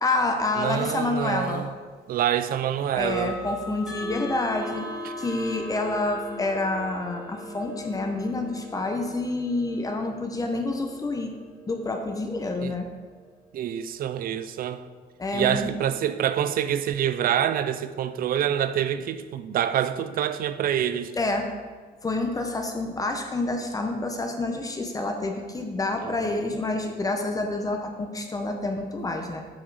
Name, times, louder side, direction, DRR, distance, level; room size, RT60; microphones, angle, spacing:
voice 1, 0.0-1.6 3.0-4.9 5.2-11.4 11.7-12.9 15.2-15.7 21.2-21.5 22.0-29.4, left 2 dB, 20° left, 3 dB, 0.8 m, -28 dB
voice 2, 0.6-1.7 2.1-3.4 5.0-5.1 12.6-12.8 13.5-14.8 15.3-21.1 26.0-26.5, right 10 dB, 55° right, 13 dB, 0.5 m, -26 dB
sound 1, 1.4-1.6 2.9-13.8, left 1 dB, 5° right, 2.2 m, -40 dB
7.9 x 6.0 x 4.8 m, 1.5 s
cardioid pair, 150°, 17 cm